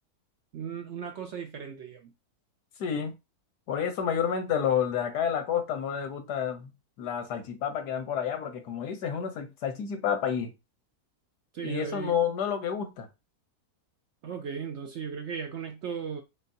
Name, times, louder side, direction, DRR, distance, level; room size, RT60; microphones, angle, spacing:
voice 1, 0.5-2.1 11.5-12.1 14.2-16.2, right 7 dB, 65° right, 0.7 m, -36 dB
voice 2, 2.8-3.1 3.7-6.7 7.0-10.5 11.6-13.1, left 8 dB, 90° left, 1.5 m, -29 dB
4.5 x 3.4 x 2.7 m
omnidirectional pair, 1.7 m